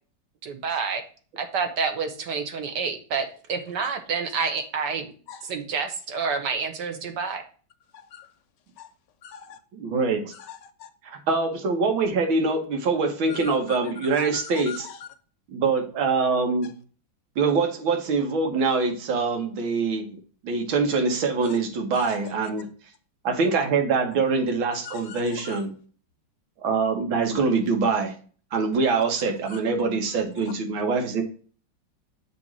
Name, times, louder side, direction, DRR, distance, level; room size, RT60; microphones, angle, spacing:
voice 1, 0.4-1.0 1.4-5.1 5.4-7.4, right 5 dB, 65° right, 1.5 m, -28 dB
voice 2, 7.9-8.3 8.8-8.9 9.2-9.6 10.3-10.9 13.3-15.1 21.4-21.6 21.9-22.2 24.8-25.6 29.5-29.6, left 8 dB, 75° left, 1.1 m, -42 dB
voice 3, 9.7-10.3 11.0-14.9 15.5-16.7 17.4-20.2 20.4-22.7 23.2-25.7 26.6-28.1 28.5-31.2, right 4 dB, 85° right, 2.0 m, -24 dB
6.8 x 3.0 x 6.0 m
omnidirectional pair, 2.1 m